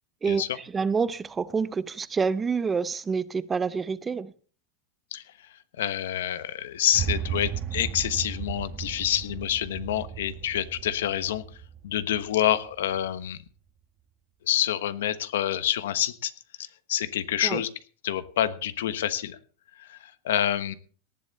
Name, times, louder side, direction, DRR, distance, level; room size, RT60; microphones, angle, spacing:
voice 1, 0.2-4.3 17.4-17.6, right 5 dB, 15° right, 0.6 m, -27 dB
voice 2, 5.8-11.4 11.8-13.4 14.4-16.3 16.6-17.7 18.0-19.4 19.8-20.7, left 11 dB, 90° left, 1.3 m, -27 dB
sound 1, 6.9-13.1, right 8 dB, 35° right, 1.3 m, -35 dB
18.5 x 11.5 x 4.2 m
supercardioid pair, 145°, 0 cm